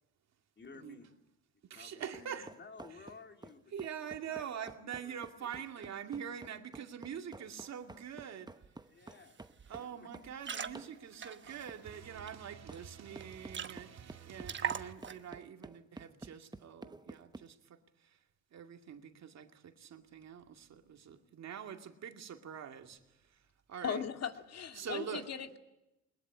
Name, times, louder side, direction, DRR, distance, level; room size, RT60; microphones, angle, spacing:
voice 1, 0.5-1.2 1.7-5.9 8.9-10.4 24.5-25.1, left 4 dB, 35° left, 3.5 m, -56 dB
voice 2, 1.7-2.5 3.7-8.5 9.7-17.6 18.5-23.0 23.7-24.0 24.8-25.2, right 8 dB, 60° right, 2.4 m, -44 dB
sound 1, 2.1-10.3 10.7-11.0 11.7-11.8 12.7-12.8 13.1-17.5, right 3 dB, 15° right, 0.9 m, -51 dB
sound 2, 8.6-8.7 9.0-9.3 9.6-9.8 10.2-12.3 12.8-12.9 13.1-13.2 13.5-14.1 14.4-15.3, right 7 dB, 40° right, 1.2 m, -41 dB
voice 3, 23.8-25.6, left 8 dB, 55° left, 2.1 m, -38 dB
21.5 x 21.0 x 9.9 m
cardioid pair, 90°, 30 cm